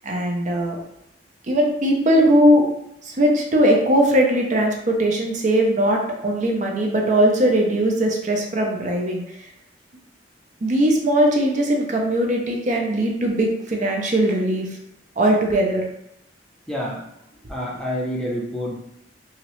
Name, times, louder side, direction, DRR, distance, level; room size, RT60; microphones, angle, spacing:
voice 1, 0.0-0.8 1.5-2.7 3.0-9.5 10.6-14.7 15.2-15.9, right 1 dB, 45° right, 1 dB, 0.5 m, -19 dB
voice 2, 16.7-17.0 17.5-18.8, equal, 5° left, -3 dB, 0.5 m, -27 dB
2.9 x 2.8 x 3.0 m, 0.81 s
head